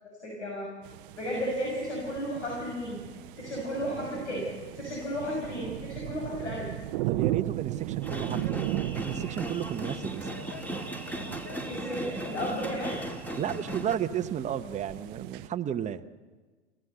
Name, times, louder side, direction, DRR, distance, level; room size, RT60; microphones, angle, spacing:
voice 1, 0.2-0.7 1.1-3.0 3.4-4.5 4.7-6.7 11.6-13.0, equal, 80° left, -1 dB, 6.2 m, -33 dB
sound 1, 0.8-15.5, right 17 dB, 50° right, 0.7 m, -37 dB
voice 2, 7.1-10.3 13.4-16.2, right 9 dB, 20° right, 8 dB, 0.9 m, -33 dB
sound 2, 8.0-14.0, right 1 dB, 5° left, 2.1 m, -37 dB
26.5 x 16.0 x 8.0 m, 1.4 s
hypercardioid pair, 100°, 35 cm